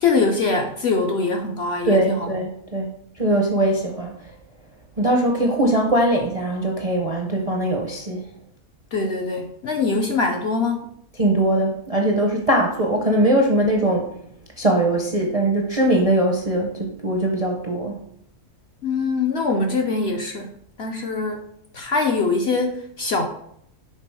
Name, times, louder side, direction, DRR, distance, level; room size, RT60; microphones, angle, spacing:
voice 1, 0.0-2.3 8.9-10.9 18.8-20.5 20.8-21.4 21.7-23.3, left 4 dB, 60° left, 3 dB, 0.7 m, -23 dB
voice 2, 1.8-2.9 3.2-4.1 5.0-8.2 11.2-14.0 14.6-18.0, right 1 dB, 40° right, 1 dB, 0.5 m, -21 dB
5.9 x 3.8 x 4.6 m, 0.69 s
omnidirectional pair, 1.6 m